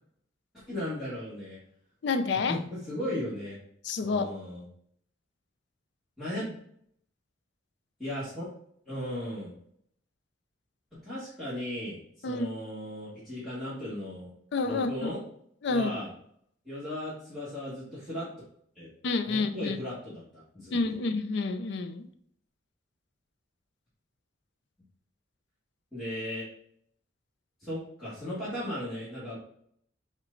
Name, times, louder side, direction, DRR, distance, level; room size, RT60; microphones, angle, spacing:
voice 1, 0.7-1.6 2.5-3.6 4.0-4.6 6.2-6.5 8.0-8.5 8.8-9.5 10.9-14.3 14.6-15.2 15.7-16.1 16.6-18.3 18.7-18.9 19.2-21.0 25.9-26.4 27.6-29.4, left 1 dB, ahead, -12 dB, 1.4 m, -36 dB
voice 2, 2.0-2.6 3.8-4.3 12.2-12.5 14.5-15.1 15.6-15.9 19.0-19.8 20.7-22.1, left 3 dB, 60° left, 9 dB, 0.4 m, -29 dB
5.9 x 2.2 x 3.8 m, 0.68 s
head